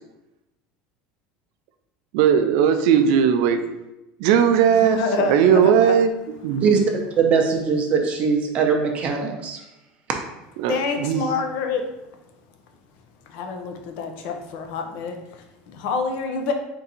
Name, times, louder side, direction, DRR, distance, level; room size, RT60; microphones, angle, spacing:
voice 1, 2.1-3.6 4.2-5.0 5.3-6.1 6.4-6.7 10.6-11.2, right 8 dB, 70° right, 8 dB, 0.4 m, -18 dB
voice 2, 4.7-6.0 10.7-11.9 13.3-16.5, left 4 dB, 60° left, 4 dB, 0.6 m, -27 dB
voice 3, 6.6-9.6, right 5 dB, 35° right, 2 dB, 0.7 m, -21 dB
3.7 x 2.6 x 4.2 m, 0.95 s
cardioid pair, 155°, 4 cm